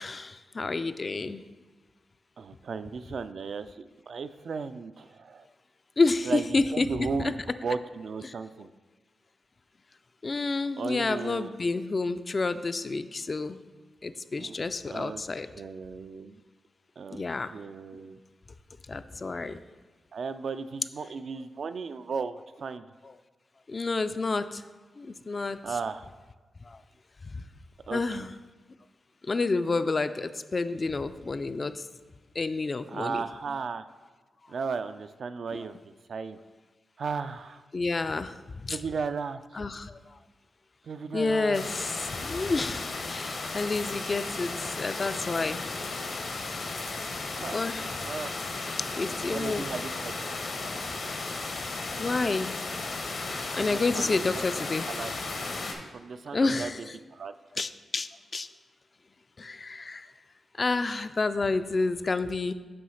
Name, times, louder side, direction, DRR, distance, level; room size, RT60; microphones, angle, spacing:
voice 1, 0.0-1.4 6.0-7.3 8.2-8.3 10.2-13.6 14.0-15.5 17.1-17.5 18.9-19.6 23.0-23.1 23.7-24.6 25.0-25.6 26.7-26.8 27.3-27.4 27.9-28.3 29.2-31.9 32.4-33.2 35.5-35.7 37.7-38.4 38.6-38.8 39.5-40.2 41.1-45.6 47.5-47.9 49.0-49.7 52.0-52.6 53.5-54.9 56.3-57.0 57.6-58.5 59.4-60.1 60.6-62.5, left 3 dB, 40° left, 11 dB, 0.3 m, -29 dB
voice 2, 2.4-5.4 6.3-7.3 7.6-8.7 10.8-11.5 14.4-14.5 14.9-15.2 15.5-16.4 17.0-17.2 17.5-18.2 20.1-22.8 25.6-26.1 27.9-28.3 32.9-33.8 34.5-35.8 36.1-36.4 37.0-37.6 38.7-39.7 40.8-41.7 47.3-47.6 48.0-48.3 49.2-50.2 53.6-54.2 54.9-55.1 55.9-56.7 57.1-57.3, right 5 dB, 65° right, 11 dB, 0.3 m, -35 dB
sound 1, 41.5-55.7, left 3 dB, 65° left, 0.9 m, -35 dB
7.7 x 3.1 x 5.6 m, 1.4 s
cardioid pair, 85°, 0 cm